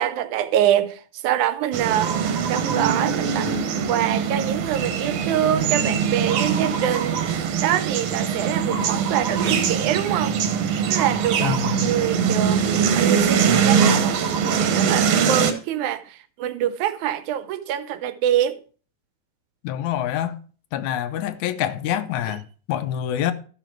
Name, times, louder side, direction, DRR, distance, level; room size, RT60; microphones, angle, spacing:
voice 1, 0.0-2.1 2.5-3.6 3.9-10.4 10.8-18.6, right 11 dB, 85° right, 2.2 m, -25 dB
sound 1, 1.7-15.5, right 7 dB, 65° right, 2.1 m, -22 dB
voice 2, 11.4-11.9 19.6-20.4 20.7-23.3, left 11 dB, 80° left, 2.2 m, -26 dB
13.0 x 5.9 x 4.6 m
omnidirectional pair, 3.4 m